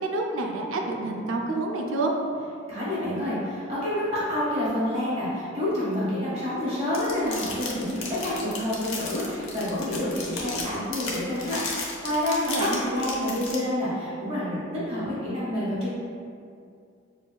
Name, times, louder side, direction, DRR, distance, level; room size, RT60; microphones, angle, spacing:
voice 1, 0.0-2.1 12.5-12.8, right 2 dB, 75° right, 1 dB, 0.5 m, -28 dB
voice 2, 2.7-15.9, left 1 dB, 30° right, -9 dB, 1.4 m, -28 dB
sound 1, 6.9-13.5, left 4 dB, 80° left, 0.8 m, -34 dB
6.8 x 2.8 x 2.3 m, 2.3 s
head